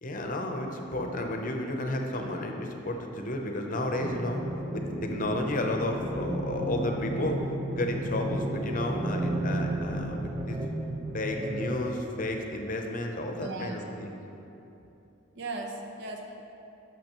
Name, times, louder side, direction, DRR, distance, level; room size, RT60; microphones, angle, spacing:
voice 1, 0.0-4.4 4.7-7.4 7.8-10.6 11.1-14.2, left 1 dB, 45° left, 3 dB, 0.7 m, -32 dB
sound 1, 4.0-12.7, right 1 dB, 25° right, 0.6 m, -33 dB
voice 2, 13.4-13.8 15.3-16.4, right 2 dB, 60° right, 2 dB, 0.8 m, -37 dB
12.0 x 6.3 x 3.0 m, 3.0 s
head